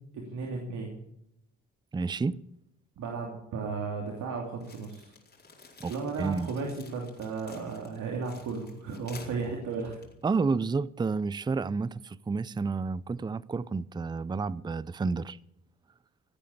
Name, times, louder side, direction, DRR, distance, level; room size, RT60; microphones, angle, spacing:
voice 1, 0.1-1.0 3.0-5.1 5.9-10.1, right 4 dB, 80° right, 3.0 m, -35 dB
voice 2, 1.9-2.4 5.8-5.9 6.2-6.5 10.2-15.4, right 4 dB, 15° right, 0.4 m, -30 dB
sound 1, 4.6-10.7, left 3 dB, 35° left, 4.5 m, -52 dB
17.0 x 8.5 x 8.4 m
cardioid pair, 90°, 30 cm